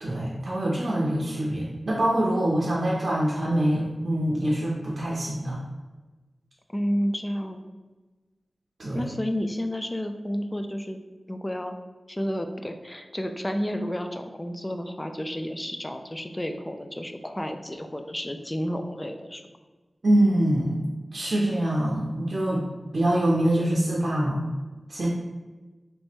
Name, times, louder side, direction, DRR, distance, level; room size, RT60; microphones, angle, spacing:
voice 1, 0.0-5.6 8.8-9.1 20.0-20.8 21.1-22.6 22.9-24.4 24.9-25.1, right 1 dB, 55° right, -4 dB, 0.6 m, -24 dB
voice 2, 6.7-7.6 8.9-11.0 11.3-11.7 12.1-19.4, equal, 15° left, 6 dB, 0.3 m, -31 dB
3.3 x 3.0 x 4.3 m, 1.2 s
wide cardioid pair, 100°, 0 cm